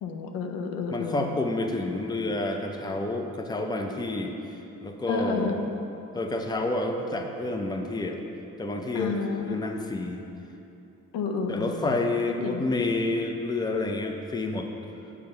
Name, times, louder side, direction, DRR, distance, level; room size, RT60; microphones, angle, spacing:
voice 1, 0.0-1.3 5.1-5.6 8.9-9.6 11.1-11.8 12.4-12.6, left 4 dB, 85° left, 4 dB, 0.6 m, -30 dB
voice 2, 0.9-5.7 6.1-8.2 8.6-10.2 11.5-14.7, left 2 dB, 15° left, 3 dB, 0.5 m, -29 dB
6.8 x 3.4 x 5.4 m, 2.9 s
cardioid pair, 80°, 33 cm